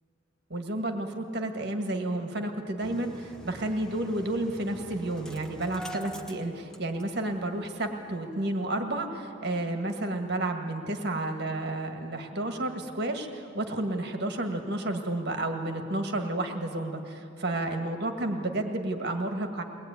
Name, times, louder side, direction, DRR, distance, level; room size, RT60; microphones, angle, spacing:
voice 1, 0.5-19.6, right 1 dB, 55° right, 4 dB, 1.8 m, -31 dB
Engine starting, 2.8-7.4 7.6-7.7 8.1-8.2, equal, 5° left, 1.2 m, -44 dB
22.5 x 19.5 x 9.6 m, 2.7 s
head